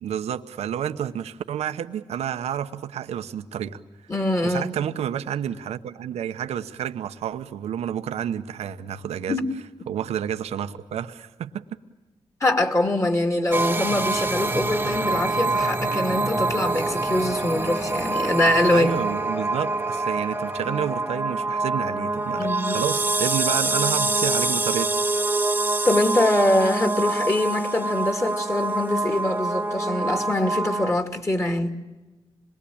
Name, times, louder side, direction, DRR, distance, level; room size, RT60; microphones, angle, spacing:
voice 1, 0.0-3.8 4.4-9.4 9.9-11.6 18.7-24.9, right 9 dB, 90° right, 0.9 m, -30 dB
voice 2, 4.1-4.7 9.3-9.4 12.4-18.9 22.4-22.8 25.8-31.8, left 1 dB, 30° left, 2.6 m, -23 dB
sound 1, 13.5-30.9, right 2 dB, 20° right, 1.1 m, -25 dB
26.5 x 21.5 x 8.6 m
cardioid pair, 75°, 11 cm